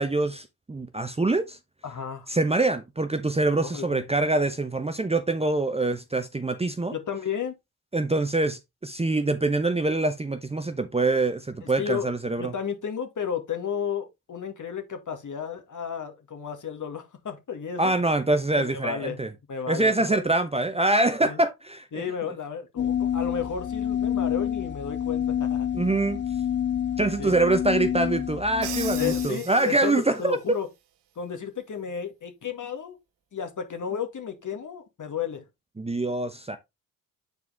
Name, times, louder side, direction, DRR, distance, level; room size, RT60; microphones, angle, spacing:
voice 1, 0.0-1.6 2.3-6.9 7.9-12.5 17.8-19.3 19.7-21.9 25.7-26.2 27.0-30.6 35.8-36.6, right 2 dB, 15° right, 0.8 m, -25 dB
voice 2, 1.8-2.3 3.6-4.1 6.9-7.6 11.6-12.1 12.4-17.9 18.6-19.2 19.5-20.2 21.2-21.4 21.9-25.7 27.2-27.3 28.9-30.7 31.2-33.0 33.3-35.4, left 7 dB, 45° left, 2.0 m, -33 dB
sound 1, 22.8-29.3, left 9 dB, 25° left, 0.5 m, -28 dB
Crash cymbal, 28.6-30.3, right 11 dB, 65° right, 1.0 m, -38 dB
8.1 x 4.7 x 3.4 m
hypercardioid pair, 45°, 44 cm